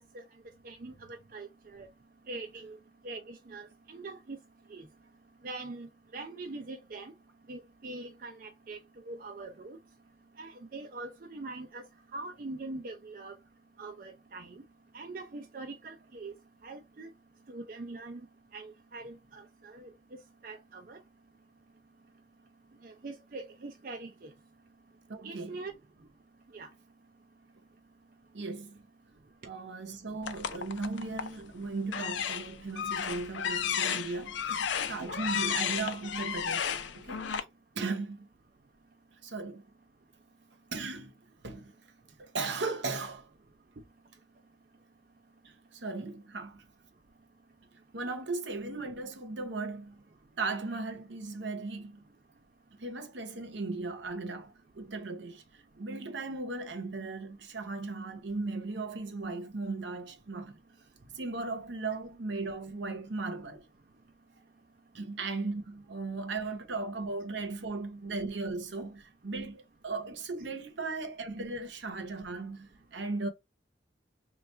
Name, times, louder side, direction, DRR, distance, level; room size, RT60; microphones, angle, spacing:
voice 1, 0.6-1.9 2.3-2.8 3.0-4.4 4.7-4.9 5.4-7.1 7.5-8.8 9.1-9.8 10.4-11.8 12.1-13.3 13.8-14.6 14.9-16.3 16.6-17.1 17.5-18.2 18.5-21.0 22.8-24.3 25.2-25.7 26.5-26.7 35.0-35.1, right 3 dB, 45° right, 0.5 m, -43 dB
voice 2, 25.1-25.6 28.3-28.8 29.4-36.7 36.9-37.3 37.7-38.3 39.2-39.6 40.7-41.1 41.4-41.7 42.2-43.3 45.8-46.6 47.9-50.0 50.4-52.0 52.8-55.4 55.8-60.6 61.1-63.6 64.9-73.3, right 3 dB, 75° right, 0.9 m, -37 dB
sound 1, 30.2-31.4 31.9-37.4, left 8 dB, 80° left, 0.6 m, -33 dB
3.3 x 2.3 x 4.2 m
head